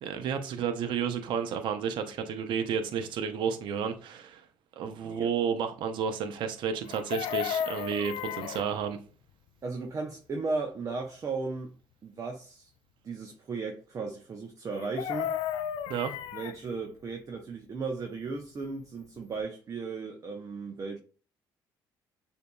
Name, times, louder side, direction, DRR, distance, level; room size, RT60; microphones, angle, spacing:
voice 1, 0.0-4.4 4.8-9.0 15.9-16.1, right 7 dB, 70° right, 0.7 m, -31 dB
Chicken rooster, 6.8-8.7 14.7-16.6 18.8-18.9 19.2-19.4, left 9 dB, 80° left, 0.4 m, -33 dB
voice 2, 9.6-11.7 12.0-12.7 13.0-15.3 16.3-21.0, right 4 dB, 40° right, 0.8 m, -36 dB
6.6 x 2.7 x 2.3 m
cardioid pair, 85°, 8 cm